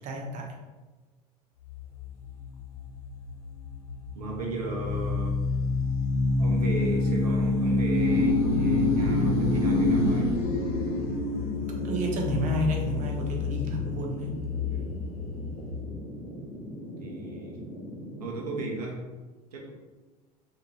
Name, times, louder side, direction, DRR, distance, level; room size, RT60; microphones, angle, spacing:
voice 1, 0.0-0.5 11.8-14.3, right 1 dB, 40° right, 0 dB, 0.7 m, -30 dB
sound 1, 1.7-15.8, left 2 dB, 70° left, 0.7 m, -27 dB
voice 2, 4.1-5.4 6.4-10.3 14.7-14.9 17.0-17.6 18.2-19.0 19.5-19.7, right 2 dB, 80° right, -1 dB, 0.5 m, -35 dB
sound 2, 10.5-18.8, equal, 30° left, 1.1 m, -41 dB
2.6 x 2.6 x 3.0 m, 1.3 s
figure-of-eight pair, 75°, 20 cm